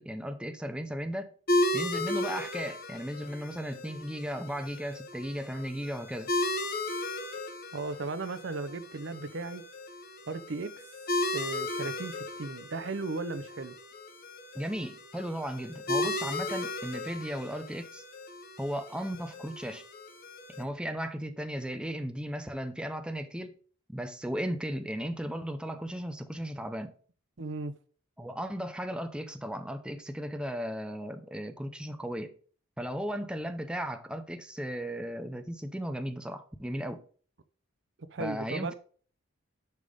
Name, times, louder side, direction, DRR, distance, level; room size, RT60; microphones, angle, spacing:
voice 1, 0.0-1.3 1.7-6.3 14.5-18.0 18.6-19.8 20.5-23.6 23.9-26.9 28.2-32.3 32.8-37.0 38.2-38.7, equal, 5° right, 0.5 m, -36 dB
sound 1, 1.5-20.6, left 1 dB, 50° left, 1.2 m, -35 dB
voice 2, 7.7-9.6 10.3-10.8 11.3-13.7 27.4-27.7 38.1-38.7, right 3 dB, 60° right, 0.7 m, -36 dB
10.5 x 3.6 x 5.0 m
head